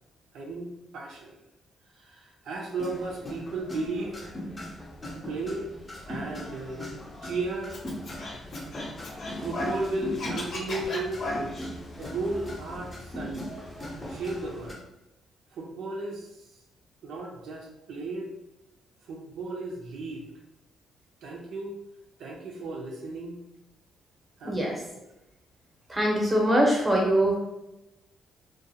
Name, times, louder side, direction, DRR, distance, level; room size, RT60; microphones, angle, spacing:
voice 1, 0.3-1.4 1.9-4.2 5.3-5.7 6.1-6.9 7.2-7.8 9.4-11.6 12.0-13.5 14.1-14.8 15.5-16.4 17.0-18.3 19.1-20.3 21.2-21.8 22.2-23.4 24.4-24.7, right 2 dB, 75° right, -1 dB, 0.5 m, -34 dB
sound 1, 2.8-14.8, equal, 25° left, 0.6 m, -39 dB
Scratching (performance technique), 7.7-9.8 10.1-11.7, left 1 dB, 65° left, 0.6 m, -35 dB
voice 2, 24.4-24.8 25.9-27.3, right 1 dB, 15° right, -1 dB, 0.8 m, -23 dB
2.4 x 2.2 x 2.7 m, 0.92 s
cardioid pair, 90°, 0 cm